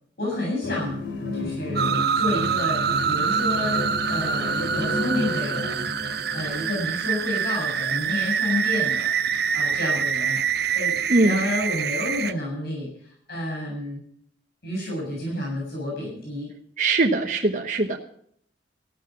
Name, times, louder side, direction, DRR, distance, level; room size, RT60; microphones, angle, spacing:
voice 1, 0.2-1.9 2.1-14.0 14.6-16.5, left 1 dB, 60° left, -3 dB, 7.3 m, -30 dB
sound 1, 0.6-6.7, left 1 dB, 85° left, 2.8 m, -31 dB
sound 2, 1.8-12.3, right 7 dB, 65° right, 0.9 m, -25 dB
voice 2, 16.8-18.0, right 2 dB, 45° right, 2 dB, 1.1 m, -21 dB
15.5 x 12.0 x 5.9 m, 0.65 s
head